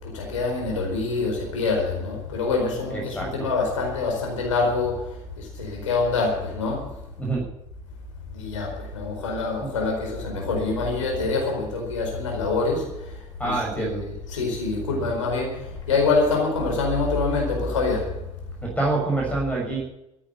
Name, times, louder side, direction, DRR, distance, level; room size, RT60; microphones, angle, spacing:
voice 1, 0.0-7.0 8.3-18.2, left 3 dB, 75° left, 1 dB, 4.6 m, -26 dB
voice 2, 2.9-3.3 7.2-7.4 13.4-14.0 18.8-19.8, right 2 dB, 10° left, -2 dB, 6.7 m, -25 dB
14.0 x 9.7 x 9.7 m, 0.85 s
figure-of-eight pair, 60°, 16 cm